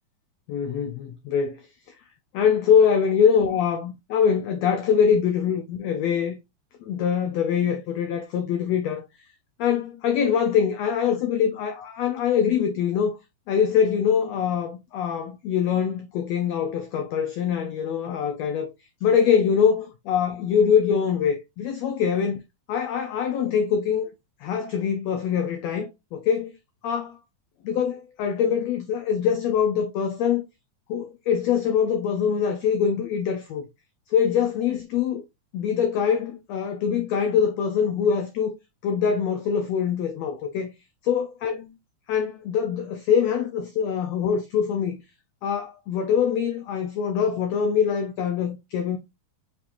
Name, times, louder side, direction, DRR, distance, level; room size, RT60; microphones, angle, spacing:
voice 1, 0.5-1.6 2.3-6.4 6.8-9.0 9.6-13.2 13.5-18.7 19.0-22.4 22.7-24.1 24.4-26.5 26.8-27.2 27.6-30.4 30.9-33.7 34.1-35.2 35.5-38.5 38.8-40.7 41.0-41.7 42.1-45.0 45.4-49.0, left 7 dB, 90° left, 1.5 m, -23 dB
6.6 x 2.9 x 2.5 m
omnidirectional pair, 3.7 m